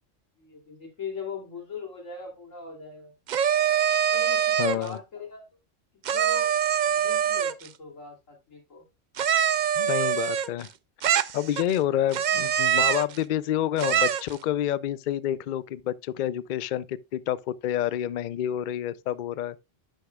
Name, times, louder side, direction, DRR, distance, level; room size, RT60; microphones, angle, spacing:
voice 1, 0.4-3.1 4.1-5.4 6.1-6.5 6.9-8.9, left 4 dB, 85° left, 3.3 m, -40 dB
sound 1, 3.3-4.9 6.0-7.7 9.2-10.7 11.0-11.8 12.1-13.2 13.8-14.3, right 9 dB, 65° right, 0.4 m, -24 dB
voice 2, 4.6-5.0 9.8-10.7 11.3-19.6, left 11 dB, 65° left, 0.5 m, -28 dB
11.5 x 6.4 x 2.3 m
omnidirectional pair, 1.3 m